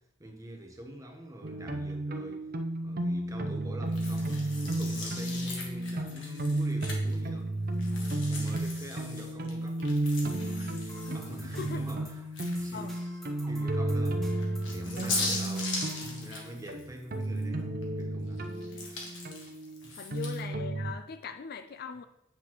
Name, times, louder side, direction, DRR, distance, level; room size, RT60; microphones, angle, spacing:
voice 1, 0.2-2.5 2.8-7.8 8.2-13.2 13.5-18.5 18.8-19.2 19.8-20.2, right 1 dB, 15° right, 0.9 m, -45 dB
sound 1, 1.4-20.9, right 1 dB, 50° right, 0.6 m, -33 dB
sound 2, 3.9-7.3 7.8-13.0 13.4-13.5 14.4-17.4 17.8-20.4, left 3 dB, 65° left, 1.5 m, -39 dB
sound 3, 10.9-16.2, equal, ahead, 1.4 m, -52 dB
voice 2, 11.1-11.8 12.7-12.9 14.8-15.3 20.0-22.0, left 5 dB, 50° left, 0.4 m, -41 dB
8.1 x 5.8 x 3.1 m
head